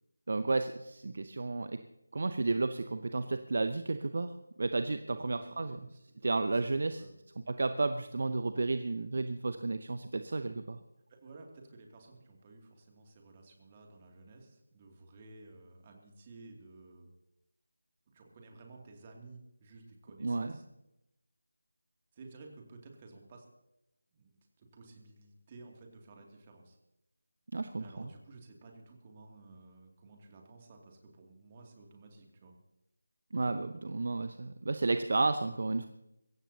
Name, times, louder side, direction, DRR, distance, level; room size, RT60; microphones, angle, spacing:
voice 1, 0.3-1.8 2.1-4.3 4.6-5.8 6.2-7.0 7.5-10.8 20.2-20.5 27.5-28.1 33.3-35.9, right 3 dB, 45° right, 10 dB, 0.8 m, -32 dB
voice 2, 5.1-6.2 6.5-7.1 11.1-17.1 18.1-20.6 22.1-23.5 24.1-26.8 27.8-32.5, right 3 dB, 20° right, 2 dB, 2.6 m, -54 dB
23.0 x 16.5 x 2.9 m, 0.88 s
figure-of-eight pair, 160°, 0 cm